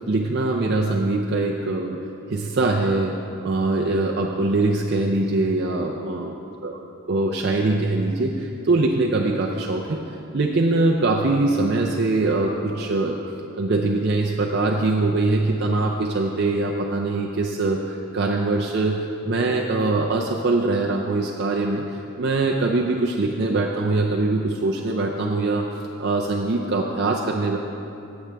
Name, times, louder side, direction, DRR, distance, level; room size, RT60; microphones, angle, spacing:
voice 1, 0.1-2.0 2.3-6.3 6.6-6.8 7.1-10.0 10.3-13.1 13.6-21.8 22.2-25.7 26.0-27.6, right 2 dB, 55° right, -1 dB, 0.5 m, -22 dB
14.5 x 7.8 x 3.4 m, 2.8 s
head